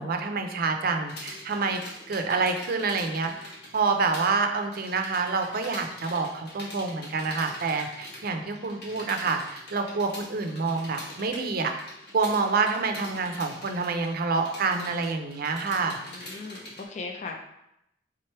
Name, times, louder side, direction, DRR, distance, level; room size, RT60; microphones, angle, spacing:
voice 1, 0.0-1.8 2.1-11.7 12.1-16.0, right 4 dB, 55° right, 5 dB, 0.5 m, -27 dB
sound 1, 1.1-4.3 4.6-16.8, left 1 dB, 65° left, 1.4 m, -43 dB
voice 2, 16.1-17.4, left 3 dB, 40° left, 2 dB, 0.4 m, -38 dB
3.7 x 3.3 x 4.3 m, 0.81 s
head